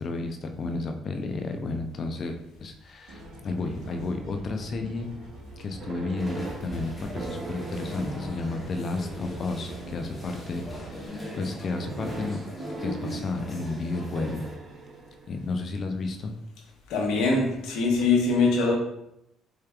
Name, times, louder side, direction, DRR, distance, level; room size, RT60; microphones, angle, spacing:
voice 1, 0.0-5.1 5.6-12.4 12.8-14.4 15.3-16.3, left 3 dB, 50° left, 5 dB, 0.6 m, -32 dB
sound 1, 3.1-11.1, right 2 dB, 65° right, 1.0 m, -44 dB
sound 2, 5.8-9.2 9.9-10.4 11.8-15.9 18.0-18.1, right 3 dB, 45° right, 0.5 m, -41 dB
sound 3, 6.2-14.6, equal, 15° left, 1.3 m, -39 dB
voice 2, 16.9-18.7, left 3 dB, 70° left, -2 dB, 1.2 m, -23 dB
4.4 x 3.2 x 2.4 m, 0.82 s
hypercardioid pair, 60°, 0 cm